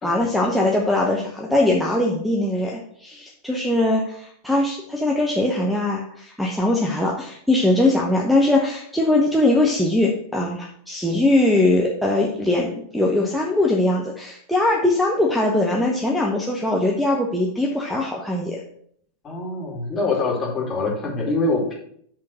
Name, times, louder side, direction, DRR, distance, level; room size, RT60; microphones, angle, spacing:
voice 1, 0.0-18.6, left 2 dB, ahead, -4 dB, 0.9 m, -21 dB
voice 2, 19.2-21.7, left 3 dB, 25° left, -2 dB, 2.3 m, -24 dB
7.7 x 3.8 x 5.7 m, 0.64 s
figure-of-eight pair, 90°, 0 cm